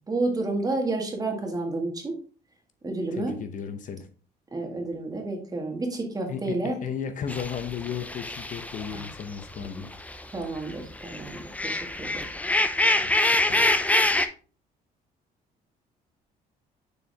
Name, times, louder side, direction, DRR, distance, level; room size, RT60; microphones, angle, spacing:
voice 1, 0.1-2.1 2.8-3.3 4.5-6.8 8.9-9.0 9.6-9.8 10.3-12.1, right 2 dB, 20° right, 2 dB, 1.8 m, -30 dB
voice 2, 3.1-4.1 6.3-9.9 13.0-13.7, left 7 dB, 50° left, 8 dB, 0.8 m, -35 dB
sound 1, 7.3-10.2 10.6-14.3, left 2 dB, 10° left, 0.5 m, -25 dB
6.6 x 4.5 x 3.4 m, 0.39 s
cardioid pair, 110°, 17 cm